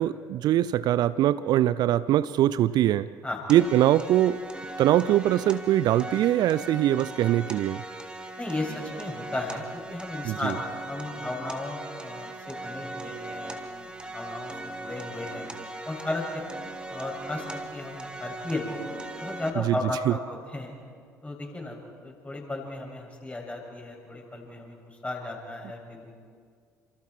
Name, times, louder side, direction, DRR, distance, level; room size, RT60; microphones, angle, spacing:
voice 1, 0.0-3.1 3.5-4.4 4.8-7.8 10.2-10.6 19.6-19.8 20.1-20.2, right 12 dB, 50° right, 17 dB, 0.5 m, -22 dB
sound 1, 3.5-19.5, right 2 dB, 10° right, 2.6 m, -39 dB
voice 2, 8.4-15.5 15.8-18.8 19.2-20.7 21.2-26.1, left 2 dB, 15° left, 0 dB, 7.5 m, -35 dB
30.0 x 27.0 x 4.7 m, 2.1 s
figure-of-eight pair, 55°, 9 cm